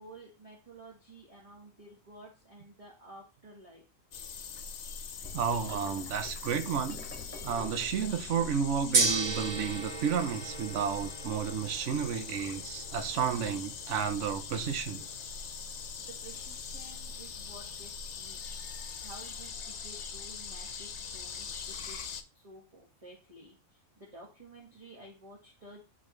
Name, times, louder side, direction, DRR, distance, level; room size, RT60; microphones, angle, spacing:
voice 1, 0.0-3.8 16.0-18.4 19.0-22.0 22.3-25.8, right 2 dB, 25° right, 1.7 m, -52 dB
sound 1, 4.1-22.2, left 6 dB, 65° left, 1.1 m, -42 dB
sound 2, 5.2-11.1, left 3 dB, 10° left, 1.7 m, -50 dB
voice 2, 5.3-7.0 7.4-15.1, right 7 dB, 65° right, 1.0 m, -32 dB
Gong, 8.9-19.1, right 3 dB, 90° right, 1.7 m, -37 dB
10.5 x 4.1 x 3.2 m
omnidirectional pair, 1.4 m